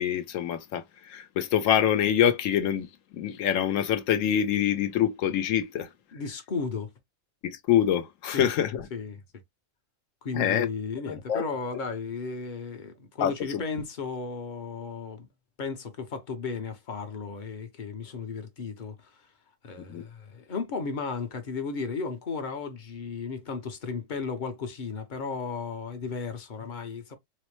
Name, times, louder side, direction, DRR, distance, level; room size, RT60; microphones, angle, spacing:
voice 1, 0.0-5.9 7.4-8.9 10.3-10.7 11.1-11.4 13.2-13.6 19.9-20.1, left 10 dB, 75° left, 1.0 m, -25 dB
voice 2, 6.1-6.9 8.3-8.5 8.9-9.2 10.2-15.3 15.6-19.2 19.6-27.2, left 4 dB, 45° left, 0.7 m, -34 dB
4.2 x 2.0 x 3.0 m
omnidirectional pair, 1.4 m